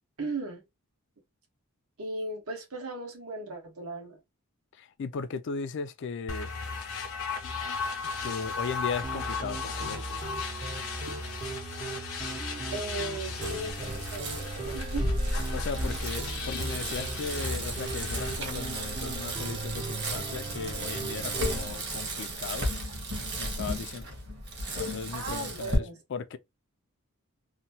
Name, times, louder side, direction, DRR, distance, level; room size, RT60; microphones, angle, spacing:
voice 1, 0.2-0.6 2.0-4.2 12.7-15.1 25.1-26.0, right 2 dB, 80° right, 1.2 m, -37 dB
voice 2, 4.8-6.5 8.2-10.3 15.5-22.7 23.4-24.1 24.7-26.4, left 5 dB, 55° left, 0.3 m, -37 dB
sound 1, 6.3-18.4, left 5 dB, 80° left, 0.8 m, -36 dB
sound 2, 9.0-21.7, right 3 dB, 25° right, 0.4 m, -39 dB
Bicycle, 13.4-25.8, right 1 dB, 50° right, 1.0 m, -34 dB
2.9 x 2.2 x 2.7 m
head